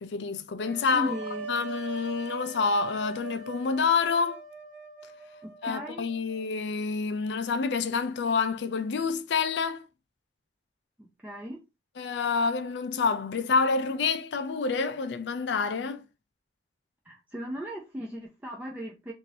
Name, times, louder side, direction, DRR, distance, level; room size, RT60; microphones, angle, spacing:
voice 1, 0.0-1.2 1.5-4.4 5.6-9.9 12.0-16.0, left 5 dB, 70° left, 0.4 m, -28 dB
sound 1, 0.6-6.5, right 3 dB, 70° right, 0.5 m, -41 dB
voice 2, 0.9-1.5 5.4-6.0 11.0-11.6 17.1-19.1, equal, 10° right, 0.4 m, -37 dB
2.7 x 2.6 x 3.0 m
head